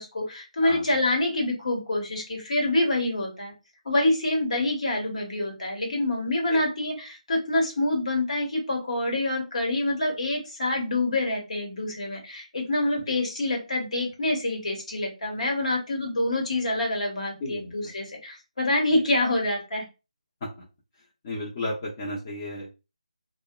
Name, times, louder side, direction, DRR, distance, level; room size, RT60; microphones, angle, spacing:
voice 1, 0.0-3.5 3.8-19.8, left 2 dB, 60° left, 1 dB, 1.1 m, -26 dB
voice 2, 17.4-17.7 21.2-22.7, left 1 dB, 25° left, -6 dB, 0.6 m, -33 dB
2.7 x 2.1 x 2.2 m, 0.29 s
figure-of-eight pair, 155°, 4 cm